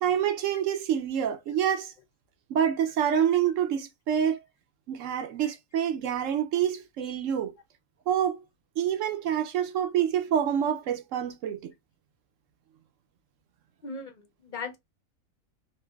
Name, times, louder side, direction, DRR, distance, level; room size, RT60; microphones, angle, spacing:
voice 1, 0.0-1.9 2.5-4.4 4.9-7.5 8.1-8.4 8.8-11.7, right 9 dB, 70° right, 1.0 m, -27 dB
voice 2, 13.8-14.8, left 4 dB, 45° left, 0.7 m, -38 dB
3.2 x 2.6 x 2.3 m
omnidirectional pair, 1.4 m